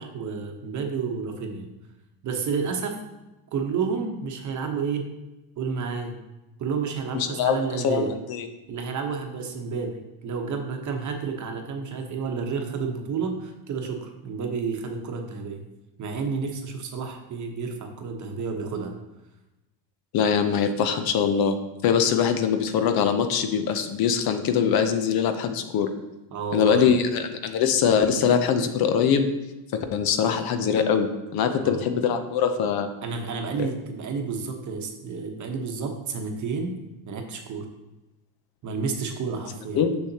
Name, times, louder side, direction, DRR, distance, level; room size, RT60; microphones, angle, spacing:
voice 1, 0.0-1.7 2.2-3.0 3.5-5.1 5.6-6.2 6.6-8.1 8.7-15.6 16.0-18.9 26.3-26.9 31.6-31.8 33.0-36.7 37.1-37.7 38.6-39.8, right 5 dB, 40° right, 4 dB, 1.0 m, -30 dB
voice 2, 7.1-8.5 20.1-25.9 26.5-29.3 29.7-32.9 33.6-33.7 39.7-40.0, left 7 dB, 55° left, 8 dB, 0.7 m, -23 dB
6.8 x 6.4 x 2.8 m, 1.0 s
cardioid pair, 135°, 44 cm